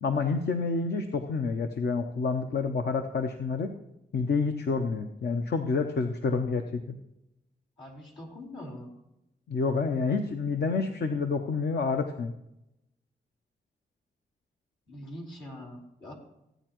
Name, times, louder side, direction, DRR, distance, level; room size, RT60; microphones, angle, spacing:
voice 1, 0.0-3.7 4.1-7.0 9.5-12.3, left 4 dB, 65° left, 6 dB, 0.7 m, -28 dB
voice 2, 7.8-8.9 14.9-16.1, left 1 dB, 80° left, -4 dB, 3.2 m, -43 dB
16.0 x 9.0 x 3.0 m, 0.89 s
cardioid pair, 50°, 18 cm